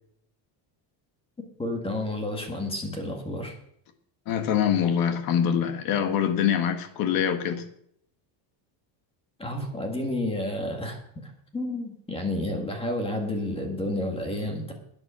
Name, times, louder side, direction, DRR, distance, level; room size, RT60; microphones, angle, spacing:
voice 1, 1.6-3.6 9.4-14.7, left 1 dB, 10° left, 1.8 m, -31 dB
voice 2, 4.3-7.6, left 8 dB, 45° left, 1.7 m, -24 dB
13.0 x 9.8 x 6.2 m
cardioid pair, 180°, 46 cm